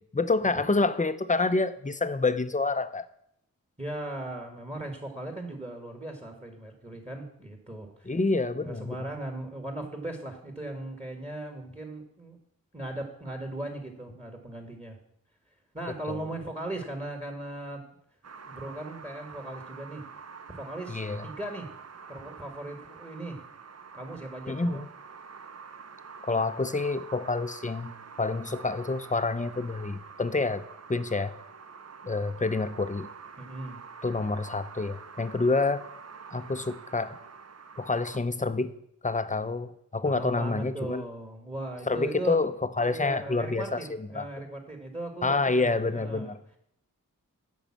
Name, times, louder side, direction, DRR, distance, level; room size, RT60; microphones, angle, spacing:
voice 1, 0.1-3.0 8.1-9.0 16.1-16.2 20.9-21.3 24.5-24.9 26.2-27.9 28.2-30.6 30.9-31.4 32.0-33.1 34.0-35.9 36.3-37.2 37.8-38.7 39.0-41.0 41.9-44.3 45.2-46.4, left 3 dB, 20° left, 0.6 m, -28 dB
voice 2, 3.8-8.2 8.6-12.4 12.7-15.0 15.7-17.8 18.5-20.0 20.5-21.7 22.1-23.4 23.9-24.8 33.4-33.8 40.0-42.4 42.8-46.4, right 1 dB, 20° right, 1.8 m, -38 dB
sound 1, 18.2-38.2, right 5 dB, 45° right, 0.7 m, -47 dB
9.0 x 5.4 x 7.4 m
cardioid pair, 45°, 35 cm